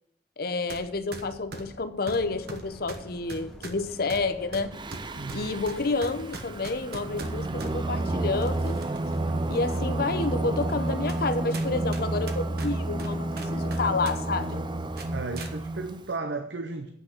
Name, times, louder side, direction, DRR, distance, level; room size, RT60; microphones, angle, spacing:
voice 1, 0.4-4.7 5.3-8.8 9.5-14.6, left 3 dB, 55° left, 0.8 m, -29 dB
sound 1, 0.7-0.8 1.1-7.7 8.4-9.1 9.6-9.7 10.4-10.5 11.1-11.3 11.5-14.2 14.4-14.6 15.0-15.5, right 3 dB, 60° right, 1.2 m, -41 dB
sound 2, 2.2-11.9, left 1 dB, ahead, 1.6 m, -48 dB
Singing, 4.7-16.1, right 2 dB, 25° right, 0.5 m, -30 dB
voice 2, 5.2-5.6 15.1-16.9, right 3 dB, 75° right, 0.7 m, -34 dB
8.0 x 6.2 x 7.8 m
head